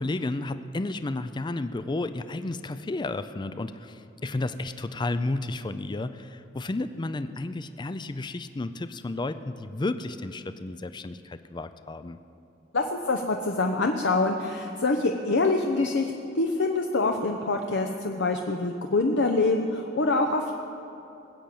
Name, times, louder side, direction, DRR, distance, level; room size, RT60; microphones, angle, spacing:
voice 1, 0.0-12.2, left 2 dB, 25° left, 11 dB, 0.4 m, -32 dB
voice 2, 12.7-20.5, left 3 dB, 65° left, 3 dB, 0.8 m, -25 dB
20.5 x 7.6 x 8.6 m, 2.7 s
head